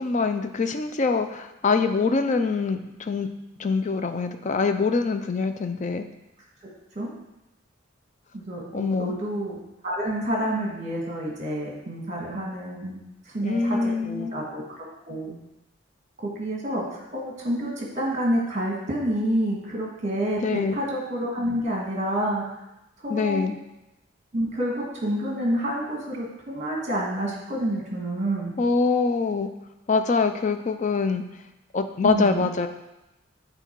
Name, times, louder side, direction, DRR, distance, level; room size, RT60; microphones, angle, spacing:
voice 1, 0.0-3.3 3.6-6.1 8.7-9.2 13.4-14.3 20.4-20.8 23.1-23.6 28.6-29.5 29.9-31.2 31.7-32.7, left 4 dB, 35° left, 8 dB, 0.4 m, -24 dB
voice 2, 8.3-9.6 9.8-13.0 13.2-15.3 16.2-22.4 23.0-23.5 24.3-28.5 32.0-32.4, right 1 dB, 35° right, -2 dB, 1.7 m, -28 dB
8.1 x 3.9 x 4.6 m, 0.94 s
head